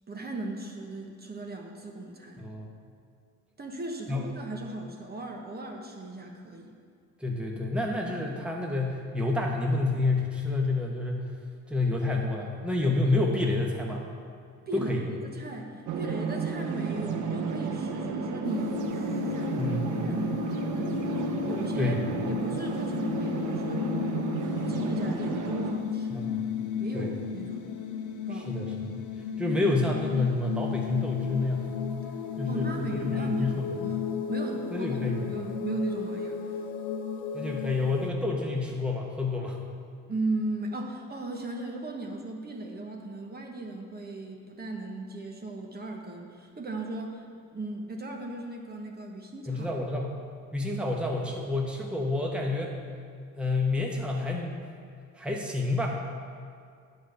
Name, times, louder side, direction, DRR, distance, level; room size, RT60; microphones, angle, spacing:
voice 1, 0.1-2.4 3.6-6.7 14.7-19.7 20.0-22.0 22.3-23.9 24.7-26.3 26.8-27.8 28.3-28.5 32.5-34.0 34.3-34.9 35.3-36.4 40.1-49.7, right 2 dB, 30° right, 1 dB, 1.2 m, -37 dB
voice 2, 2.4-2.7 4.1-4.2 7.2-11.3 11.7-14.0 14.7-15.0 19.6-19.9 21.8-22.0 26.1-26.5 26.9-27.1 28.3-29.0 29.4-31.7 32.3-33.5 34.7-35.3 37.3-39.6 49.5-50.1 50.5-52.7 53.3-54.6 55.2-55.9, left 2 dB, 5° right, -1 dB, 1.1 m, -28 dB
sound 1, 15.9-25.7, right 5 dB, 75° right, 0.8 m, -32 dB
sound 2, 18.4-38.1, left 8 dB, 75° left, 0.7 m, -34 dB
8.7 x 5.1 x 6.8 m, 2.2 s
cardioid pair, 90°, 30 cm